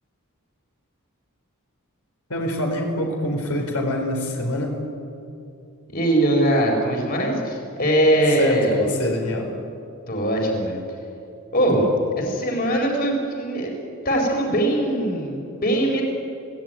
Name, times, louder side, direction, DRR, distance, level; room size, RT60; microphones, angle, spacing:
voice 1, 2.3-4.8 8.4-9.5, left 1 dB, 80° left, 1 dB, 4.4 m, -25 dB
voice 2, 5.9-8.9 10.1-10.8 11.5-13.7 14.0-16.0, right 1 dB, 40° left, 1 dB, 4.3 m, -21 dB
25.0 x 17.0 x 9.2 m, 2.6 s
head